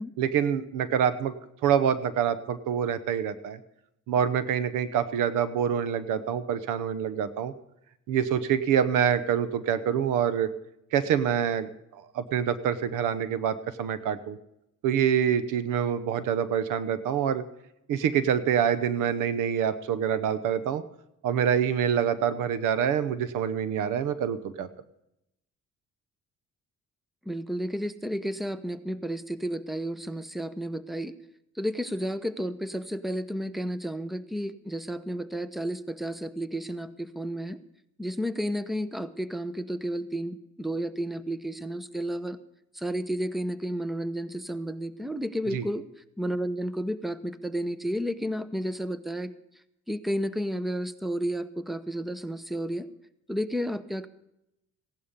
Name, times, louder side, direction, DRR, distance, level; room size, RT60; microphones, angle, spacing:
voice 1, 0.2-1.3 1.6-3.6 4.1-7.5 8.1-10.5 10.9-14.4 14.8-17.4 17.9-20.8 21.2-24.7 45.5-45.7, right 8 dB, 90° right, 13 dB, 0.9 m, -26 dB
voice 2, 27.3-31.1 31.6-37.6 38.0-42.4 42.7-45.9 46.2-49.3 49.9-52.9 53.3-54.1, equal, ahead, 13 dB, 0.8 m, -32 dB
16.0 x 11.5 x 5.3 m, 0.83 s
cardioid pair, 90°, 30 cm